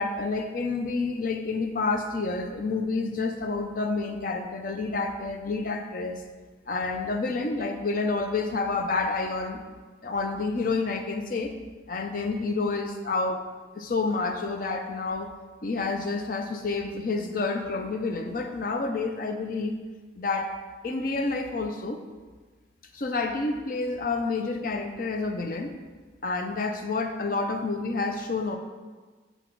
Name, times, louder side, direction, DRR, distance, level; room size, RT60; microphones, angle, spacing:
voice 1, 0.0-6.2 6.7-9.6 10.0-11.5 11.9-13.4 13.8-15.3 15.6-19.7 20.2-20.5 20.8-22.0 22.9-25.7 26.2-28.6, left 3 dB, 50° left, 5 dB, 0.5 m, -29 dB
6.1 x 4.0 x 4.5 m, 1.4 s
head